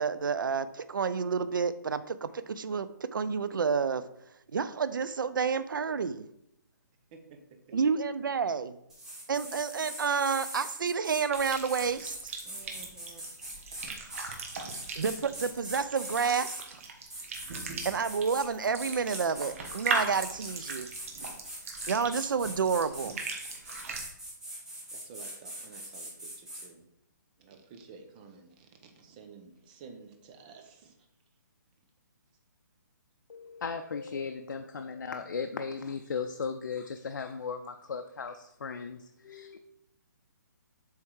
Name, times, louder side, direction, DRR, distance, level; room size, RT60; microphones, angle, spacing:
voice 1, 0.0-4.0 4.5-6.3 7.7-8.8 9.3-12.3 15.0-16.6 17.8-20.9 21.9-23.2, right 5 dB, 90° right, 13 dB, 0.5 m, -30 dB
voice 2, 7.1-7.8 9.3-9.5 12.4-13.2 23.7-24.0 24.9-26.8 27.4-31.1, right 5 dB, 25° right, 5 dB, 0.8 m, -52 dB
sound 1, 8.9-16.6 17.1-18.5 18.8-26.7, right 1 dB, 5° right, 1.2 m, -42 dB
sound 2, 11.3-24.0, right 4 dB, 45° right, 1.1 m, -39 dB
voice 3, 33.3-39.6, left 5 dB, 85° left, 6 dB, 0.5 m, -37 dB
7.4 x 3.5 x 4.6 m, 0.78 s
hypercardioid pair, 160°, 11 cm